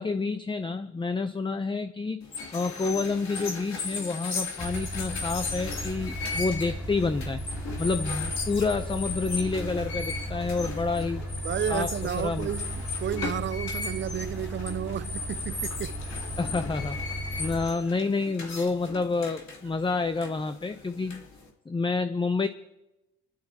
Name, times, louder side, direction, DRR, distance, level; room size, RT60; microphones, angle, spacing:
voice 1, 0.0-7.4 7.8-11.2 11.7-11.9 12.2-12.5 16.4-17.0 17.4-21.2 21.7-22.5, left 4 dB, 15° left, 0.6 m, -29 dB
sound 1, 2.2-21.5, left 4 dB, 65° left, 3.0 m, -37 dB
sound 2, 4.6-17.7, right 1 dB, 5° right, 2.9 m, -36 dB
voice 2, 11.4-16.0 17.3-17.4, right 9 dB, 40° right, 0.5 m, -32 dB
26.5 x 12.0 x 2.9 m
cardioid pair, 80°, 30 cm